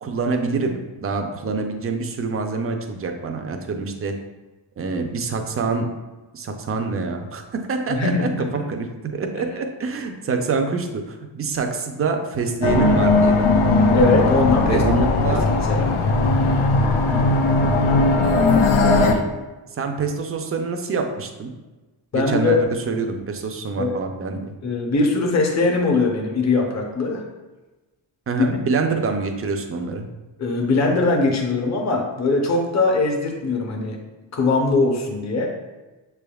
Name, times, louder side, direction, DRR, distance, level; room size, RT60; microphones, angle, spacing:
voice 1, 0.0-4.1 4.8-5.8 6.3-8.9 9.1-13.5 14.7-15.5 17.0-17.3 19.0-19.3 19.8-21.5 22.1-24.4 28.3-30.1, right 4 dB, 30° right, 4 dB, 0.4 m, -26 dB
voice 2, 7.9-8.5 13.9-14.8 15.7-16.0 22.1-22.6 23.8-23.9 24.6-27.2 28.4-28.5 30.4-34.0 34.3-35.5, left 3 dB, 35° left, 1 dB, 0.7 m, -21 dB
sound 1, 12.6-19.1, left 3 dB, 80° left, 0.6 m, -18 dB
6.7 x 3.4 x 2.3 m, 1.2 s
wide cardioid pair, 135°, 49 cm